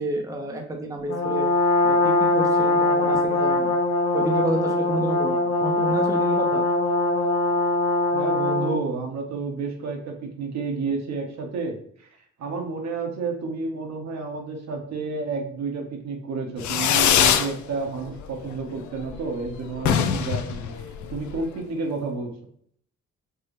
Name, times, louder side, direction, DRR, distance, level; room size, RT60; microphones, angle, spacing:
voice 1, 0.0-1.5 1.8-3.7 4.1-6.6, right 1 dB, 10° right, 2 dB, 0.6 m, -29 dB
Brass instrument, 1.1-8.8, left 2 dB, 55° left, 1.0 m, -22 dB
voice 2, 8.1-12.1 12.4-22.3, right 4 dB, 60° right, 2 dB, 0.9 m, -30 dB
Fireworks, 16.6-17.5 17.9-18.4 18.7-18.8 19.1-19.2 19.4-19.5 19.8-21.4, left 8 dB, 75° left, 0.5 m, -22 dB
4.5 x 2.1 x 3.0 m, 0.63 s
cardioid pair, 90°, 30 cm